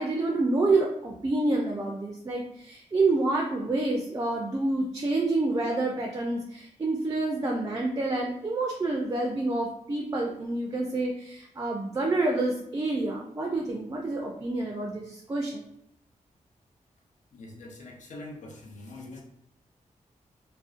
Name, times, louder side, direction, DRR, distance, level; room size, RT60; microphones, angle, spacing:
voice 1, 0.0-15.6, right 2 dB, 25° right, 0 dB, 0.3 m, -28 dB
voice 2, 17.3-19.2, left 2 dB, 65° left, -1 dB, 0.6 m, -43 dB
2.5 x 2.1 x 2.4 m, 0.78 s
wide cardioid pair, 120°, 14 cm